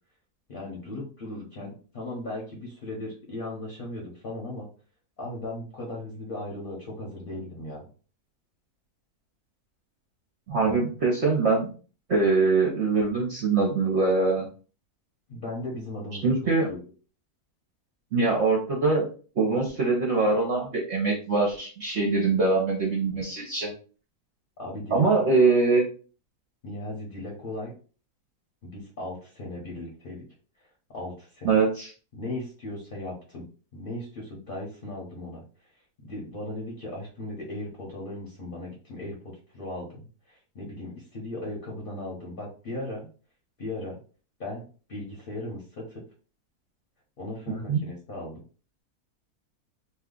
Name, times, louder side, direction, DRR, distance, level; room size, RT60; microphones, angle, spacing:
voice 1, 0.5-4.7 5.2-7.8 10.6-10.8 15.3-16.3 16.7-16.8 24.6-25.1 26.6-27.7 28.6-30.2 30.9-31.6 32.1-33.4 33.7-35.4 36.0-40.1 40.5-43.1 43.6-44.0 44.4-45.8 47.2-48.4, left 1 dB, 45° left, -2 dB, 0.9 m, -37 dB
voice 2, 10.5-11.7 12.1-14.5 16.2-16.7 18.1-19.0 19.4-23.7 24.9-25.8 31.4-31.9 47.5-47.8, right 3 dB, 55° right, -3 dB, 0.9 m, -23 dB
2.7 x 2.3 x 3.7 m, 0.38 s
omnidirectional pair, 1.6 m